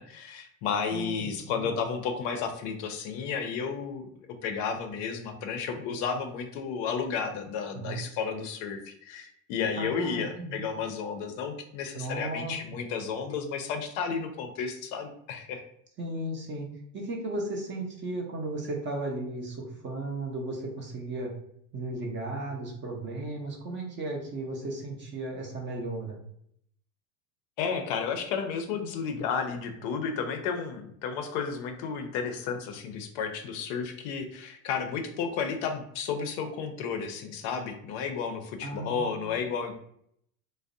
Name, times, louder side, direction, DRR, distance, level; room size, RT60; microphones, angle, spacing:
voice 1, 0.0-4.1 4.4-15.6 27.6-39.7, left 6 dB, 55° left, 6 dB, 0.5 m, -32 dB
voice 2, 0.9-1.8 7.7-8.0 9.8-10.7 11.9-12.8 16.0-16.7 16.9-21.3 21.7-26.2 38.6-39.3, right 2 dB, 25° right, 0 dB, 0.5 m, -35 dB
2.5 x 2.0 x 2.4 m, 0.70 s
supercardioid pair, 105°, 43 cm